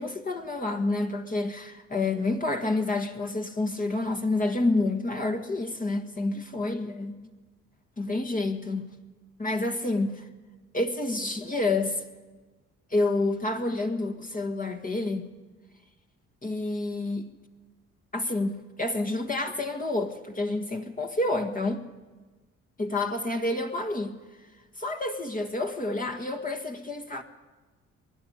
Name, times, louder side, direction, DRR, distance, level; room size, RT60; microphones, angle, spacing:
voice 1, 0.0-7.1 8.0-8.9 9.4-10.3 10.7-12.1 12.9-15.3 16.4-17.3 18.1-21.9 22.8-24.1 24.8-27.2, left 2 dB, 30° left, 5 dB, 1.6 m, -29 dB
22.5 x 11.5 x 10.0 m, 1.3 s
cardioid pair, 90°, 30 cm